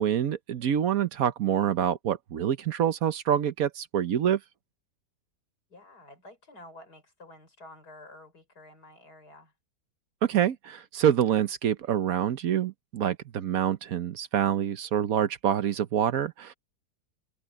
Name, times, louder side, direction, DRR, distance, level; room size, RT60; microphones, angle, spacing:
voice 1, 0.0-4.4 10.2-16.5, right 9 dB, 65° right, 1.2 m, -26 dB
voice 2, 5.7-9.5, left 1 dB, 75° left, 6.1 m, -50 dB
omnidirectional pair, 1.7 m